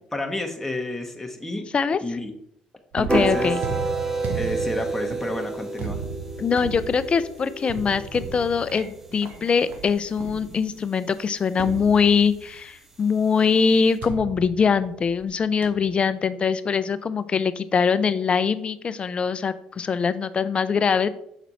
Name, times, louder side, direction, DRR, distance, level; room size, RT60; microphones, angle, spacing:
voice 1, 0.1-1.7 2.0-2.3 3.0-3.5 4.3-6.0, left 1 dB, 10° left, 3 dB, 1.0 m, -30 dB
voice 2, 2.9-3.6 6.4-21.1, left 6 dB, 40° left, 15 dB, 0.5 m, -22 dB
sound 1, 2.9-10.9 11.6-12.6 14.0-15.3 15.6-16.0, right 6 dB, 70° right, 1.0 m, -36 dB
sound 2, 3.1-9.2, right 2 dB, 15° right, 0.9 m, -29 dB
6.0 x 4.2 x 4.1 m, 0.72 s
supercardioid pair, 70°, 3 cm